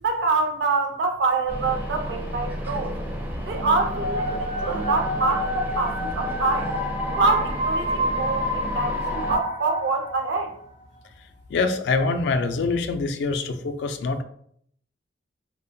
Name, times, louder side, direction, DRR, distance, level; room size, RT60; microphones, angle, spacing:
voice 1, 0.0-3.0 3.5-6.7 7.1-10.5, right 3 dB, 65° right, 4 dB, 0.5 m, -25 dB
sound 1, 1.5-9.4, equal, 10° right, 0.4 m, -32 dB
sound 2, 3.9-10.7, equal, 85° right, 0.9 m, -29 dB
voice 2, 11.5-14.2, left 3 dB, 65° left, 8 dB, 0.3 m, -24 dB
2.7 x 2.1 x 2.5 m, 0.66 s
head